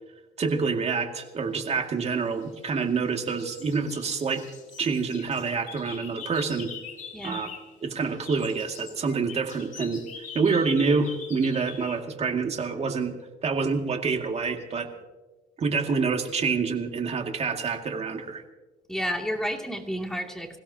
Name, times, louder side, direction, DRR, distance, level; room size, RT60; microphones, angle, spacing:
voice 1, 0.4-4.4 4.8-6.7 7.2-7.5 7.8-10.0 10.3-14.9 15.6-18.4, right 5 dB, 40° right, 4 dB, 2.2 m, -27 dB
sound 1, 2.1-2.9 3.2-7.8 8.0-12.0, left 6 dB, 50° left, 2.9 m, -44 dB
voice 2, 18.9-20.6, equal, 5° left, 1 dB, 2.5 m, -31 dB
26.5 x 16.5 x 2.9 m, 1.2 s
cardioid pair, 110°, 17 cm